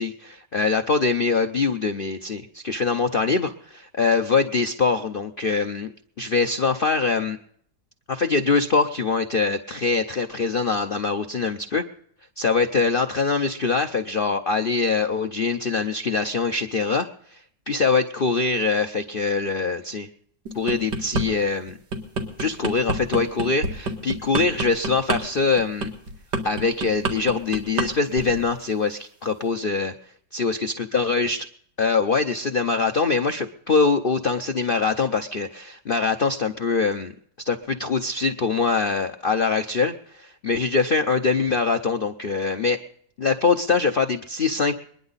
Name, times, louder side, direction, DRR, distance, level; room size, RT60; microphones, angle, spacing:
voice 1, 0.0-5.9 6.2-7.4 8.1-11.8 12.4-20.1 20.5-21.8 22.4-25.9 26.4-29.9 30.3-31.5 31.8-37.1 37.5-42.8 43.2-44.7, left 4 dB, 75° left, 6 dB, 0.5 m, -23 dB
sound 1, 20.5-21.3 21.7-27.9 28.1-28.4, right 2 dB, 65° right, 2.6 m, -27 dB
22.0 x 10.5 x 4.0 m, 0.66 s
omnidirectional pair, 2.0 m